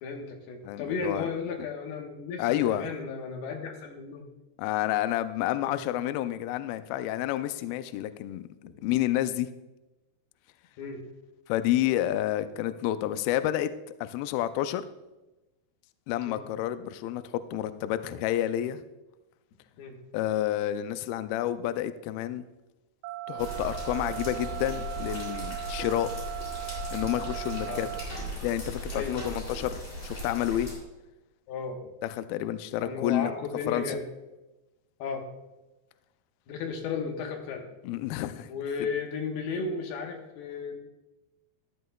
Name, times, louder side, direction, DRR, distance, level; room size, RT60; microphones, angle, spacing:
voice 1, 0.0-4.2 5.6-5.8 8.6-8.8 10.8-11.0 16.3-16.4 19.8-20.0 27.7-27.9 28.9-29.3 31.5-31.8 32.8-34.0 35.0-35.3 36.5-37.7 38.5-40.8, left 5 dB, 75° left, 2 dB, 3.1 m, -34 dB
voice 2, 0.6-1.3 2.4-2.9 4.6-8.5 8.8-9.5 11.5-13.7 14.0-14.8 16.1-18.8 20.1-22.5 23.3-26.1 26.9-27.9 28.4-30.7 32.0-33.3 33.7-34.0 37.8-38.5, left 13 dB, 90° left, 12 dB, 2.1 m, -29 dB
sound 1, 23.0-28.0, right 17 dB, 85° right, 2.2 m, -38 dB
sound 2, 23.4-30.7, equal, 15° left, 3.4 m, -38 dB
14.0 x 11.0 x 2.3 m, 1.0 s
omnidirectional pair, 4.8 m